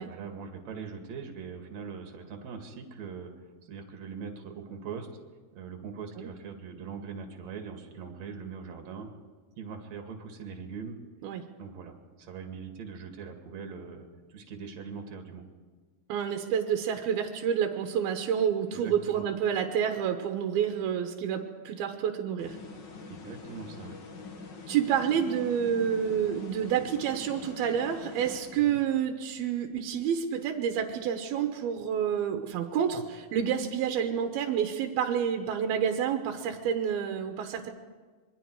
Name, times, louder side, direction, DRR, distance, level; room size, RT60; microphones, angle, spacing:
voice 1, 0.0-5.1 5.5-9.1 9.6-11.0 11.6-15.4 18.7-19.2 23.1-24.0 28.5-28.8, right 5 dB, 50° right, 4 dB, 3.0 m, -41 dB
voice 2, 16.1-22.6 24.7-37.7, right 8 dB, 75° right, 4 dB, 2.9 m, -29 dB
sound 1, 22.4-29.0, left 4 dB, 55° left, 1.2 m, -45 dB
26.5 x 22.5 x 4.7 m, 1.4 s
omnidirectional pair, 4.6 m